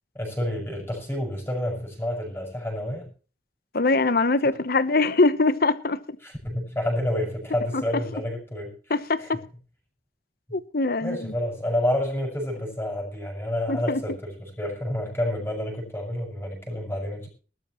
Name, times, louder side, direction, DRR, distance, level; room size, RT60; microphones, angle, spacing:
voice 1, 0.1-3.1 6.2-8.7 9.2-9.3 11.0-17.3, left 1 dB, 15° left, 6.4 m, -29 dB
voice 2, 3.7-6.0 7.7-7.8 8.9-9.5 10.5-11.3 13.7-14.0, left 3 dB, 60° left, 1.0 m, -23 dB
20.5 x 12.5 x 3.1 m
head